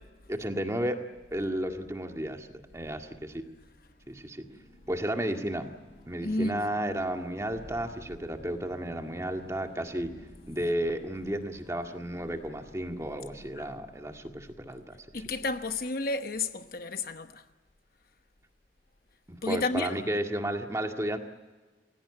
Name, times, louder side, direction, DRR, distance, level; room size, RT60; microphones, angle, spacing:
voice 1, 0.3-1.0 1.3-3.4 4.1-4.4 4.9-5.7 6.1-10.1 10.4-15.4 19.3-21.2, right 1 dB, 15° right, 1.9 m, -33 dB
sound 1, 3.7-13.7, equal, 30° left, 7.7 m, -52 dB
voice 2, 6.2-6.6 13.6-13.7 15.1-17.4 19.4-19.9, left 2 dB, 55° left, 1.0 m, -31 dB
27.5 x 16.5 x 9.9 m
head